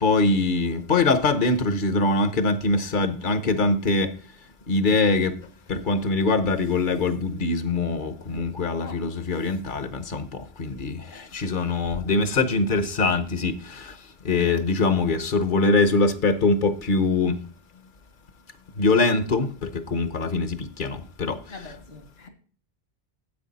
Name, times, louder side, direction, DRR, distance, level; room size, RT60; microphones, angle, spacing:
voice 1, 0.0-4.1 4.7-5.3 5.7-10.3 10.6-11.0 11.3-13.5 14.2-17.4 18.8-21.4, left 3 dB, 55° left, 1.0 m, -23 dB
voice 2, 21.5-22.3, left 4 dB, 75° left, 2.5 m, -42 dB
9.7 x 8.1 x 4.1 m
omnidirectional pair, 1.1 m